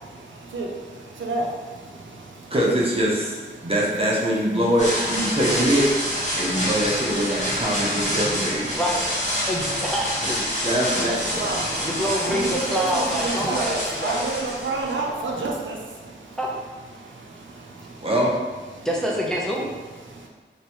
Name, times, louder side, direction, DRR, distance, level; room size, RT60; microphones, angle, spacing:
voice 1, 1.2-1.5 11.4-11.7 12.4-15.8, right 3 dB, 90° right, -1 dB, 0.5 m, -28 dB
voice 2, 2.5-3.4 3.6-5.9 6.4-8.7 10.6-11.5 18.0-18.3, equal, 30° right, -4 dB, 1.0 m, -23 dB
sound 1, 4.8-15.4, equal, 40° left, 1.4 m, -27 dB
voice 3, 9.5-10.5 11.8-14.2 16.4-16.5 18.8-19.7, equal, ahead, -3 dB, 0.7 m, -26 dB
3.3 x 3.0 x 3.0 m, 1.4 s
wide cardioid pair, 50°, 19 cm